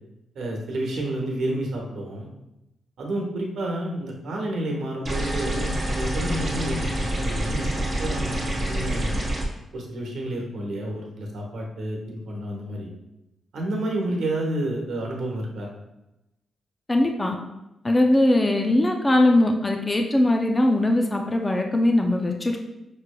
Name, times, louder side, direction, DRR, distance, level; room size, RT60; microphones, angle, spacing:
voice 1, 0.3-2.3 3.0-6.9 7.2-9.2 9.7-12.9 13.5-15.7, right 1 dB, 80° right, -1 dB, 1.0 m, -30 dB
sound 1, 5.1-9.5, right 1 dB, 35° right, 1.1 m, -27 dB
voice 2, 16.9-17.4 17.8-22.6, left 1 dB, 20° left, 3 dB, 0.3 m, -20 dB
5.8 x 3.1 x 2.2 m, 0.91 s
wide cardioid pair, 130°, 0 cm